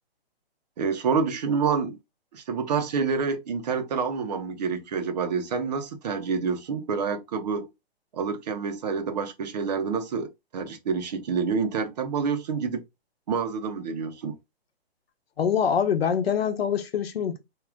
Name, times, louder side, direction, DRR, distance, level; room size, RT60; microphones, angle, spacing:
voice 1, 0.8-2.0 2.3-7.7 8.1-12.8 13.3-14.4, right 5 dB, 40° right, 0.6 m, -28 dB
voice 2, 15.4-17.4, left 7 dB, 70° left, 0.9 m, -24 dB
3.5 x 2.3 x 3.5 m
hypercardioid pair, 150°, 32 cm